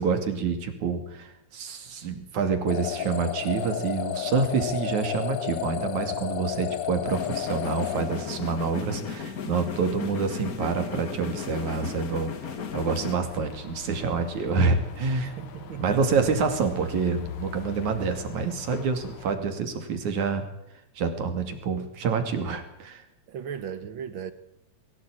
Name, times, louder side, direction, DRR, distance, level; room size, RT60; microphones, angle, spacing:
voice 1, 0.0-12.3 12.7-15.3 15.8-20.5 21.0-23.0, right 5 dB, 80° right, 3.9 m, -27 dB
sound 1, 2.7-8.8, left 10 dB, 55° left, 1.4 m, -32 dB
sound 2, 7.1-13.2, left 6 dB, 40° left, 1.4 m, -35 dB
sound 3, 12.6-19.4, left 5 dB, 90° left, 3.4 m, -42 dB
voice 2, 15.2-16.3 16.6-16.8 23.3-24.3, right 8 dB, 60° right, 1.4 m, -37 dB
22.5 x 17.0 x 9.0 m
omnidirectional pair, 3.3 m